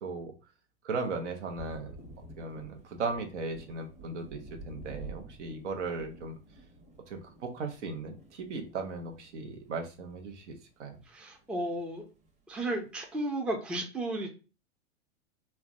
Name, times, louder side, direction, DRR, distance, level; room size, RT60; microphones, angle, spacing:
voice 1, 0.0-0.3 0.8-1.9 2.4-4.4 4.7-6.4 7.1-11.0, right 4 dB, 80° right, 4 dB, 0.8 m, -37 dB
Thunder, 1.1-10.9 11.2-12.3, right 2 dB, 20° right, 0.8 m, -50 dB
voice 2, 11.1-12.0 12.5-14.3, right 1 dB, 5° right, 2 dB, 0.3 m, -33 dB
3.3 x 2.1 x 2.5 m, 0.33 s
hypercardioid pair, 105°, 35 cm